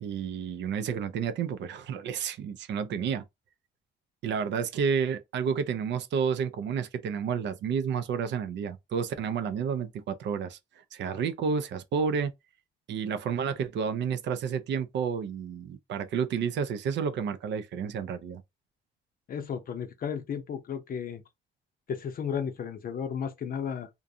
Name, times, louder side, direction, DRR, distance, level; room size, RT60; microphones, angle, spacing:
voice 1, 0.0-3.2 4.2-10.6 10.9-12.3 12.9-18.4, right 6 dB, 65° right, 0.4 m, -30 dB
voice 2, 19.3-21.2 21.9-23.9, left 7 dB, 45° left, 0.5 m, -34 dB
2.5 x 2.2 x 2.6 m
cardioid pair, 90°, 20 cm